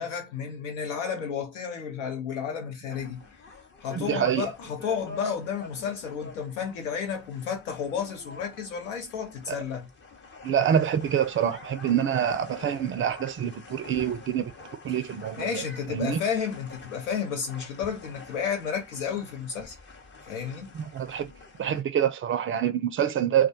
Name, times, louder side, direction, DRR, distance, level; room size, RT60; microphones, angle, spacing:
voice 1, 0.0-3.2 3.8-9.9 15.4-19.8 20.2-20.7, left 7 dB, 80° left, 0.8 m, -32 dB
sound 1, 2.9-21.8, left 3 dB, 30° left, 0.8 m, -47 dB
voice 2, 3.9-4.5 9.5-9.6 10.4-14.5 14.8-15.6 15.9-16.2 20.7-21.3 21.6-23.5, right 9 dB, 35° right, 0.4 m, -26 dB
2.2 x 2.2 x 2.6 m
hypercardioid pair, 55°, 37 cm